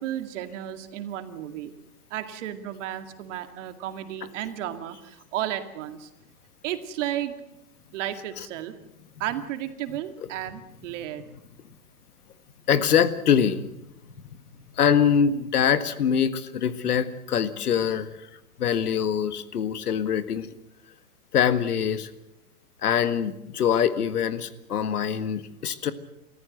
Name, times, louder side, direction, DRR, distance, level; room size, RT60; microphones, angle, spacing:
voice 1, 0.0-1.7 2.1-6.1 6.6-7.4 7.9-8.7 9.2-11.2, right 12 dB, 55° right, 8 dB, 2.3 m, -33 dB
voice 2, 12.7-13.6 14.8-18.2 18.6-20.5 21.3-22.1 22.8-25.9, left 8 dB, 90° left, 12 dB, 1.8 m, -23 dB
29.5 x 14.5 x 8.0 m, 0.87 s
hypercardioid pair, 145°, 44 cm